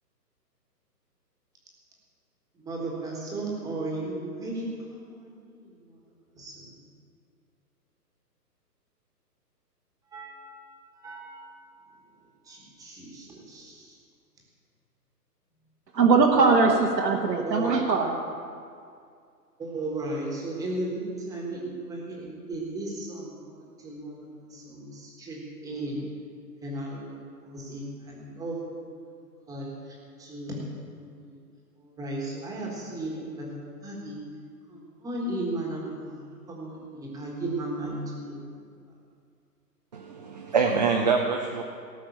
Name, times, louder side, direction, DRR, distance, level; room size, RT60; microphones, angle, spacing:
voice 1, 2.6-6.0 6.3-6.7 10.1-11.7 12.4-14.0 17.4-17.8 19.6-26.0 26.6-29.1 29.4-30.6 31.0-31.4 31.8-34.2 34.7-38.6, right 2 dB, 5° right, 1.5 m, -36 dB
voice 2, 15.9-18.2, right 4 dB, 75° right, 1.7 m, -21 dB
voice 3, 39.9-41.6, right 5 dB, 25° right, 0.5 m, -25 dB
17.5 x 5.9 x 7.1 m
hypercardioid pair, 140°, 50 cm